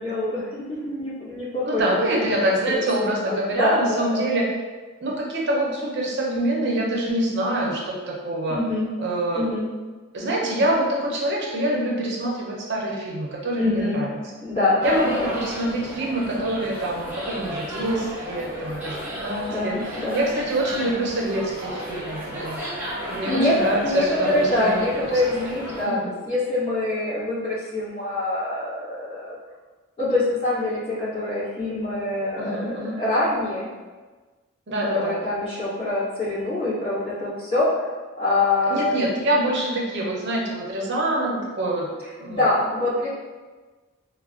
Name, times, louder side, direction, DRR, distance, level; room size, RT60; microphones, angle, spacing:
voice 1, 0.0-1.8 2.1-2.4 2.7-4.2 8.5-8.9 9.3-9.7 13.6-14.0 14.4-15.9 19.4-20.2 22.9-26.0 26.2-29.3 30.0-33.7 34.8-37.9 38.2-38.9 42.3-43.1, left 2 dB, 25° left, -12 dB, 1.3 m, -25 dB
voice 2, 1.7-4.4 5.0-8.6 9.0-9.5 10.1-14.1 14.8-19.8 20.1-22.6 23.1-24.8 25.5-26.1 32.4-33.0 34.7-35.2 38.7-41.9 42.2-42.4, right 1 dB, 55° right, -2 dB, 0.6 m, -25 dB
sound 1, 14.8-25.8, equal, 10° right, 0.7 m, -34 dB
3.2 x 2.2 x 2.4 m, 1.3 s
head